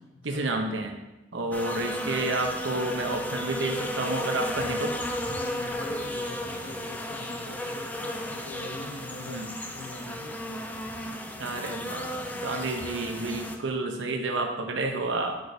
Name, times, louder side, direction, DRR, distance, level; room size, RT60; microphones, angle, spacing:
voice 1, 0.2-0.9 1.3-4.9 9.2-9.5 11.4-15.3, right 2 dB, 90° right, 3 dB, 0.8 m, -30 dB
sound 1, 1.5-13.6, left 1 dB, 10° left, 0.4 m, -34 dB
voice 2, 5.3-9.4 9.7-10.4, left 2 dB, 80° left, -1 dB, 0.7 m, -42 dB
7.8 x 5.0 x 2.7 m, 1.1 s
head